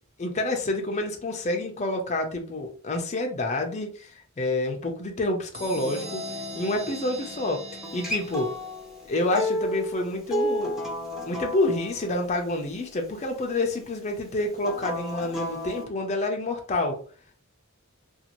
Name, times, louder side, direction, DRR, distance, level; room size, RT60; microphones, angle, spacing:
voice 1, 0.2-6.2 6.5-8.5 9.1-10.8 11.3-17.0, left 2 dB, 35° left, 3 dB, 0.5 m, -28 dB
sound 1, 5.5-9.1, left 1 dB, 25° right, 1.0 m, -39 dB
Acoustic guitar, 7.8-13.0 14.6-15.8, equal, ahead, 0.7 m, -32 dB
2.6 x 2.4 x 2.9 m, 0.42 s
head